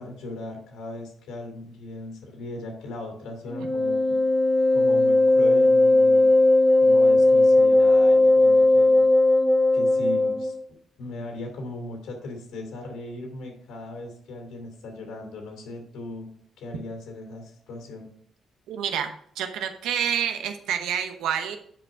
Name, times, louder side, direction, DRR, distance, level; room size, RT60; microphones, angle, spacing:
voice 1, 0.0-4.1 4.7-6.3 6.8-9.0 9.7-10.6 11.0-16.3 16.6-18.1, left 2 dB, 90° left, 3 dB, 2.7 m, -38 dB
Wind instrument woodwind instrument, 3.5-10.5, left 2 dB, 15° left, 1.1 m, -18 dB
voice 2, 18.7-21.6, right 8 dB, 90° right, 7 dB, 0.9 m, -28 dB
7.7 x 5.1 x 4.9 m, 0.65 s
cardioid pair, 90°, 0 cm